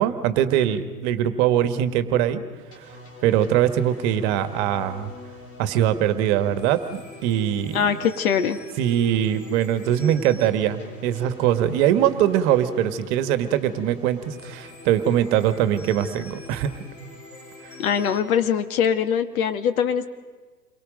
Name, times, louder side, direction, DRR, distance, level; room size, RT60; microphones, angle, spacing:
voice 1, 0.0-2.4 2.8-2.9 3.2-5.1 5.6-7.9 8.8-16.7, right 10 dB, 45° right, 11 dB, 1.7 m, -22 dB
sound 1, 2.7-18.2, left 3 dB, 30° left, 5.2 m, -44 dB
voice 2, 7.7-8.6 17.8-20.1, left 7 dB, 60° left, 9 dB, 2.0 m, -22 dB
29.0 x 23.5 x 5.3 m, 1.4 s
figure-of-eight pair, 100°, 48 cm